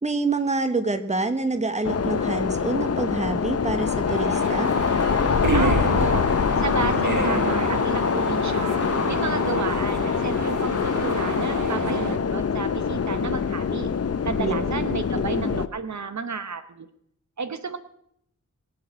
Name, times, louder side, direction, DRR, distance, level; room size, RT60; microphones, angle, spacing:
voice 1, 0.0-4.7 14.4-14.9, right 3 dB, 20° right, 9 dB, 1.3 m, -27 dB
sound 1, 1.8-15.7, left 6 dB, 50° left, 0.7 m, -24 dB
sound 2, 4.1-12.2, right 5 dB, 90° right, 1.1 m, -30 dB
voice 2, 5.5-8.8 9.1-13.9 14.2-16.9 17.4-17.8, right 5 dB, 65° right, 10 dB, 0.9 m, -32 dB
22.5 x 7.8 x 6.2 m, 0.73 s
wide cardioid pair, 95°, 31 cm